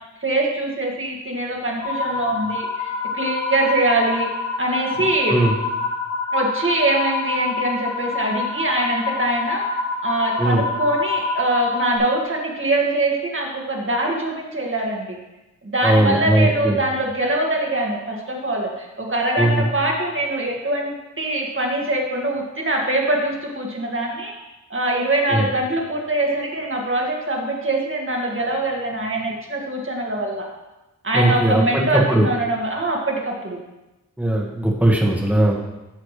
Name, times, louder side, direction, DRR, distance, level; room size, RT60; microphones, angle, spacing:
voice 1, 0.2-4.3 4.6-5.4 6.3-9.7 10.0-15.2 15.6-24.3 24.7-30.5 31.0-33.6, right 2 dB, 45° right, -1 dB, 2.0 m, -23 dB
sound 1, 1.8-12.0, left 3 dB, 85° left, 2.6 m, -26 dB
voice 2, 15.8-16.8 19.4-19.7 25.3-25.5 31.1-32.3 34.2-35.5, right 1 dB, 5° right, -2 dB, 1.7 m, -18 dB
12.0 x 6.8 x 3.3 m, 1.0 s
wide cardioid pair, 85°, 30 cm